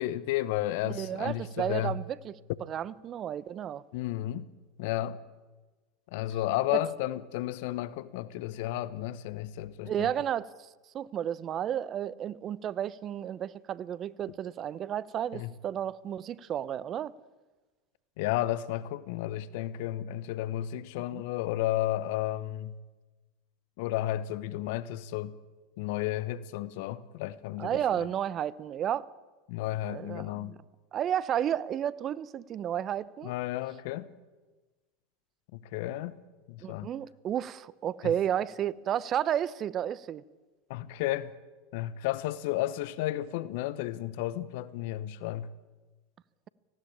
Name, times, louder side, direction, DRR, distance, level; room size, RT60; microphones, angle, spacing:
voice 1, 0.0-1.9 3.9-4.5 4.8-5.2 6.1-10.1 15.3-15.5 18.2-22.7 23.8-25.4 25.8-27.8 29.5-30.5 33.2-34.1 35.7-36.1 36.5-36.9 40.7-41.3 41.7-45.5, left 14 dB, 65° left, 0.9 m, -32 dB
voice 2, 0.8-3.8 6.7-6.8 9.8-10.7 10.9-17.1 21.1-21.2 27.6-29.1 29.9-30.6 30.9-33.3 36.6-40.2, right 10 dB, 40° right, 0.8 m, -32 dB
18.5 x 16.0 x 8.7 m
hypercardioid pair, 90°, 0 cm